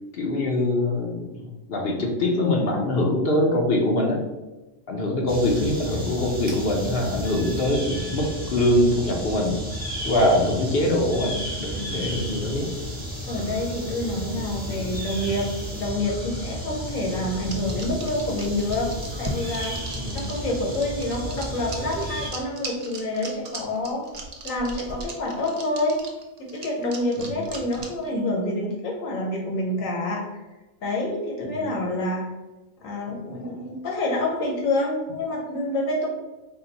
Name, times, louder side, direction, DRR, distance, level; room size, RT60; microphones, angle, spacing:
voice 1, 0.1-4.2 4.9-9.5 10.1-12.7 14.6-14.9 20.0-20.3 27.2-27.4 31.4-31.6, left 1 dB, 55° left, -1 dB, 0.8 m, -23 dB
sound 1, 5.3-22.3, equal, 10° right, 0.7 m, -33 dB
voice 2, 13.3-15.5 15.7-18.9 19.2-19.8 20.1-24.0 24.4-26.0 26.4-30.4 30.8-32.3 32.8-36.1, left 1 dB, 80° left, -1 dB, 1.1 m, -27 dB
sound 2, 17.5-28.1, right 3 dB, 60° right, 0.4 m, -37 dB
3.8 x 2.2 x 3.9 m, 1.1 s
omnidirectional pair, 1.4 m